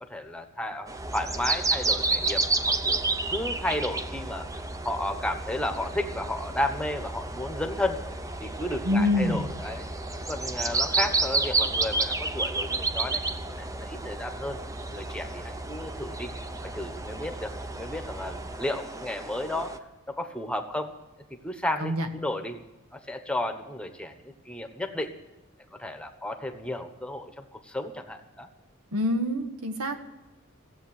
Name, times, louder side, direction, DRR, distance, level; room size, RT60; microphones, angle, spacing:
voice 1, 0.0-3.0 3.3-4.5 4.8-8.0 8.4-9.9 10.3-13.2 13.6-16.3 16.7-19.8 20.1-20.9 21.4-22.6 22.9-25.1 25.7-28.5, left 1 dB, 5° left, 6 dB, 1.1 m, -33 dB
sound 1, 0.9-19.8, right 3 dB, 15° right, 0.7 m, -31 dB
sound 2, 1.0-18.6, right 1 dB, 45° right, 3.1 m, -41 dB
voice 2, 8.9-9.5 21.8-22.1 28.9-30.0, left 1 dB, 85° right, 5 dB, 1.8 m, -26 dB
16.5 x 8.1 x 9.6 m, 1.0 s
head